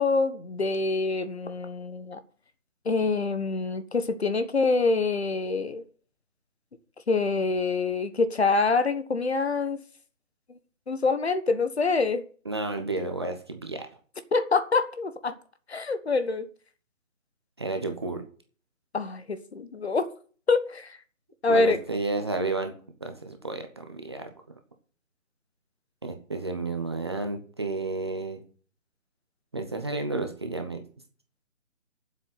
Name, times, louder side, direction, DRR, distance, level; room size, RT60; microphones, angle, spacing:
voice 1, 0.0-2.2 2.8-5.8 7.1-9.8 10.9-12.2 14.3-15.3 15.7-16.5 18.9-20.1 20.5-21.0 21.4-21.8, left 3 dB, 50° left, 1.3 m, -25 dB
voice 2, 12.4-13.9 17.6-18.2 21.5-22.7 23.0-24.3 26.0-28.4 29.5-30.8, right 3 dB, 20° right, 0.9 m, -31 dB
9.5 x 7.6 x 7.8 m
figure-of-eight pair, 155°, 41 cm